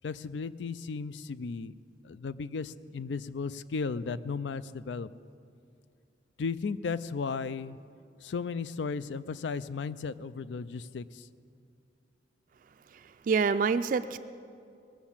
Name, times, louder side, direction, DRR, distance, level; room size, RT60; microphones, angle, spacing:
voice 1, 0.0-1.7 2.0-5.1 6.4-7.8 8.2-11.3, left 5 dB, 85° left, 15 dB, 0.4 m, -35 dB
voice 2, 12.9-14.2, right 5 dB, 50° right, 10 dB, 0.3 m, -27 dB
19.5 x 7.2 x 7.2 m, 2.4 s
head